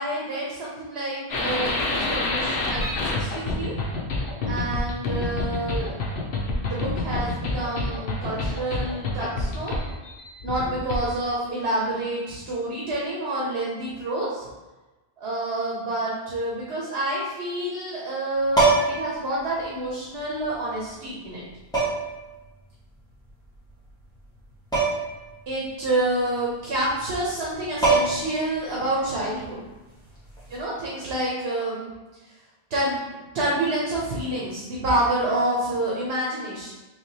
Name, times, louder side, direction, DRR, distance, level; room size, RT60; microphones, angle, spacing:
voice 1, 0.0-3.7 4.5-6.0 6.6-9.8 10.4-14.5 15.2-21.4 25.5-29.6 30.5-31.9 32.7-33.0 33.3-36.7, right 1 dB, 85° right, -5 dB, 1.0 m, -28 dB
sound 1, 1.3-11.2, left 2 dB, 90° left, 0.9 m, -28 dB
sound 2, 18.5-19.1 20.4-20.5 21.7-22.2 24.7-25.1 25.5-25.6 27.4-27.5 27.8-28.4 30.4-30.6, right 3 dB, 5° left, 1.2 m, -21 dB
3.5 x 3.1 x 2.8 m, 1.1 s
omnidirectional pair, 1.0 m